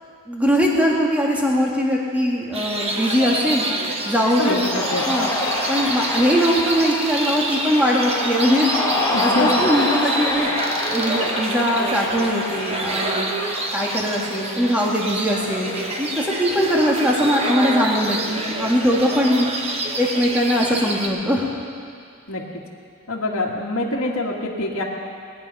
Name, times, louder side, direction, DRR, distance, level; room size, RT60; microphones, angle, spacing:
voice 1, 0.3-3.7 4.1-4.7 5.1-5.3 5.7-8.7 9.2-10.5 10.9-13.3 13.7-15.7 16.0-19.5 20.0-21.5, equal, 5° right, -3 dB, 1.9 m, -21 dB
sound 1, 2.5-21.1, right 2 dB, 30° right, 1.2 m, -27 dB
voice 2, 4.4-5.1 9.1-9.7 22.3-22.4 23.1-24.8, left 1 dB, 65° left, -3 dB, 1.8 m, -25 dB
Cheering, 4.4-19.2, left 2 dB, 15° left, 2.0 m, -28 dB
20.0 x 10.0 x 5.6 m, 2.2 s
head